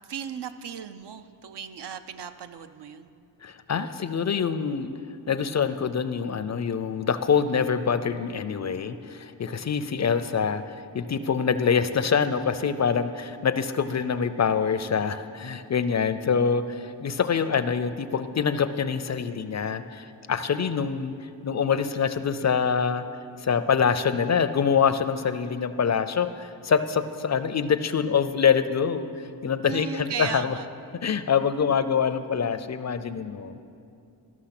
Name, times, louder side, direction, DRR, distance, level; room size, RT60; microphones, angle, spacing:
voice 1, 0.1-3.1 29.6-30.7, right 7 dB, 70° right, 10 dB, 0.6 m, -36 dB
voice 2, 3.4-4.9 5.3-21.1 21.4-23.0 23.4-30.5 31.0-33.6, left 6 dB, 40° left, 12 dB, 0.4 m, -25 dB
13.0 x 6.1 x 5.9 m, 2.6 s
wide cardioid pair, 80°, 43 cm